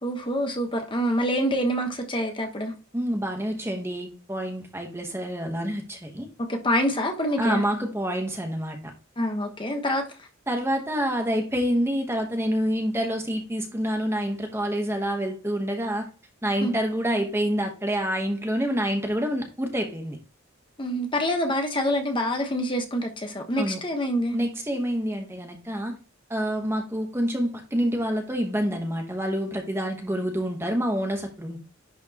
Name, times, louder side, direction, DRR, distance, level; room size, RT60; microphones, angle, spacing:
voice 1, 0.0-2.7 6.4-7.6 9.2-10.1 16.6-16.7 20.8-24.4, equal, 25° left, 1.1 m, -26 dB
voice 2, 2.9-6.3 7.4-8.8 10.5-16.1 16.4-20.2 23.6-23.8 24.3-25.9 26.3-31.6, equal, 10° right, 1.0 m, -27 dB
10.5 x 4.3 x 2.9 m
head